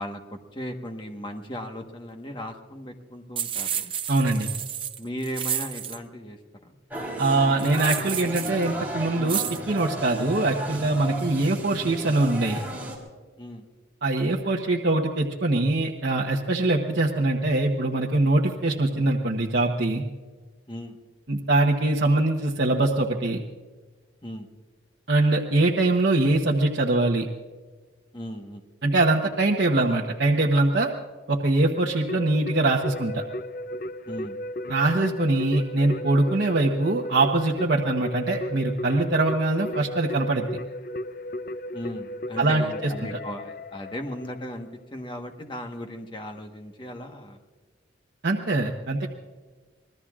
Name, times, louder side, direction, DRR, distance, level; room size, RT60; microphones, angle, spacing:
voice 1, 0.0-3.9 5.0-6.7 13.4-13.6 20.7-21.0 24.2-24.5 28.1-28.6 34.1-34.4 41.7-47.4, equal, 25° left, 4 dB, 1.2 m, -37 dB
sound 1, 3.4-6.0 7.6-8.6 9.3-9.6, right 9 dB, 25° right, 0.6 m, -31 dB
voice 2, 4.1-4.5 7.2-12.6 14.0-20.0 21.3-23.4 25.1-27.3 28.8-30.9 31.3-33.2 34.7-40.5 42.4-42.9 48.2-49.1, right 2 dB, 60° right, -1 dB, 1.0 m, -23 dB
cafeteria Universitaria, 6.9-13.0, right 1 dB, 10° right, 3.7 m, -34 dB
Keyboard (musical), 32.1-44.5, left 1 dB, 45° left, 0.4 m, -35 dB
26.5 x 20.0 x 2.5 m, 1.3 s
head